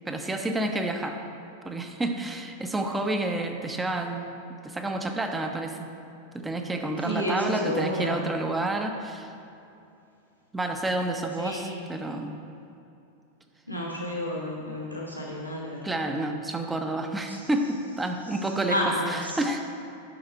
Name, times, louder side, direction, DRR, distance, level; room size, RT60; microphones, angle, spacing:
voice 1, 0.1-1.2 1.6-4.3 4.6-5.9 6.3-9.3 10.5-12.4 15.8-19.8, right 2 dB, 10° right, 4 dB, 0.7 m, -29 dB
voice 2, 7.0-8.2 11.4-11.8 13.7-15.9 17.3-17.5 18.3-18.4 18.7-19.5, equal, 90° left, -5 dB, 1.3 m, -31 dB
11.5 x 5.6 x 4.5 m, 2.7 s
figure-of-eight pair, 90°, 0 cm